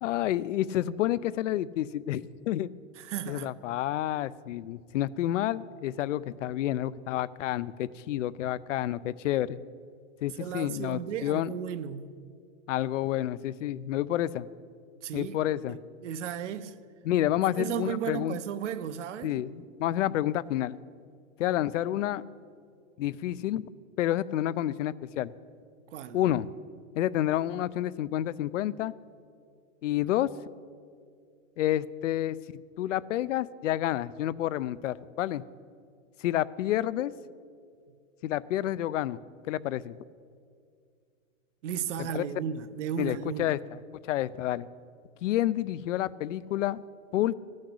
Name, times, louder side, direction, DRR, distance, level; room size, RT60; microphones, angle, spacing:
voice 1, 0.0-2.7 3.3-9.6 10.2-11.5 12.7-14.5 15.1-15.8 17.0-18.4 19.2-20.8 21.4-22.2 23.0-23.6 24.0-25.3 26.1-26.5 27.0-28.9 29.8-30.3 31.6-32.4 32.8-35.4 36.2-37.1 38.2-39.2 39.5-40.0 42.0-42.3 43.0-43.8 44.1-44.7 45.2-46.8 47.1-47.3, left 13 dB, 65° left, 0.5 m, -29 dB
voice 2, 3.0-3.5 10.4-12.3 15.0-15.4 15.7-16.7 17.4-19.4 25.9-26.2 41.6-43.6, right 8 dB, 60° right, 0.8 m, -35 dB
15.0 x 6.5 x 10.0 m
supercardioid pair, 165°, 40 cm